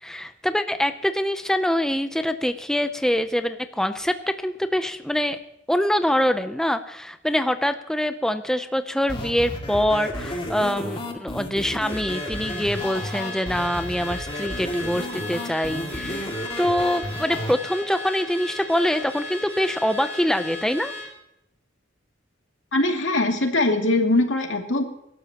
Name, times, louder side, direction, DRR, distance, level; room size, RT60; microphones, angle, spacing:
voice 1, 0.0-5.4 5.7-16.3 16.6-20.9, equal, 5° left, 9 dB, 0.5 m, -24 dB
sound 1, 9.1-17.5, left 1 dB, 30° left, 2.3 m, -32 dB
Car / Alarm, 11.9-21.1, left 2 dB, 15° right, 5.3 m, -36 dB
voice 2, 22.7-24.8, left 2 dB, 75° left, 2 dB, 2.4 m, -21 dB
24.5 x 12.5 x 2.9 m, 0.83 s
head